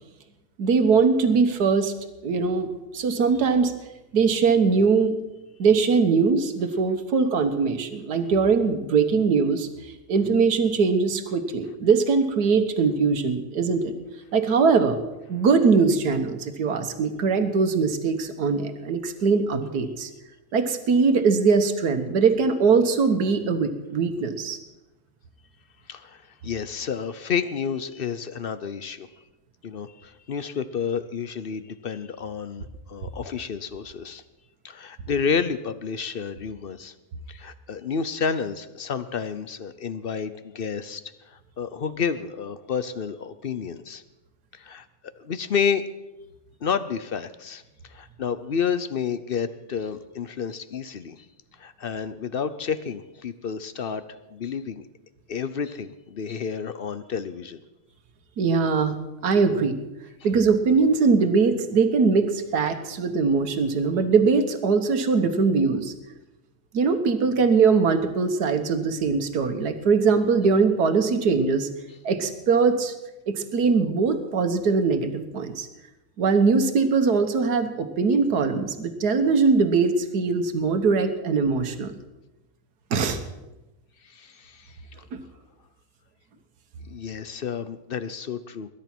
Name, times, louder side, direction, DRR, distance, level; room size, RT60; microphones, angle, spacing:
voice 1, 0.6-1.9 2.2-2.7 2.9-3.7 4.1-5.2 5.6-13.9 14.3-15.0 15.3-20.1 20.5-24.6 58.4-58.9 59.2-59.8 60.2-65.9 66.7-71.7 72.0-72.9 73.3-75.7 76.2-82.0 82.9-83.2 85.1-85.2, right 5 dB, 85° right, 8 dB, 1.7 m, -21 dB
voice 2, 25.9-29.1 29.6-34.2 34.6-36.9 37.3-44.0 44.5-44.8 45.2-45.9 46.6-51.3 51.6-54.8 55.3-57.6 84.0-84.8 86.9-88.7, left 6 dB, 50° left, 13 dB, 0.7 m, -30 dB
21.0 x 10.5 x 6.0 m, 1.0 s
omnidirectional pair, 1.7 m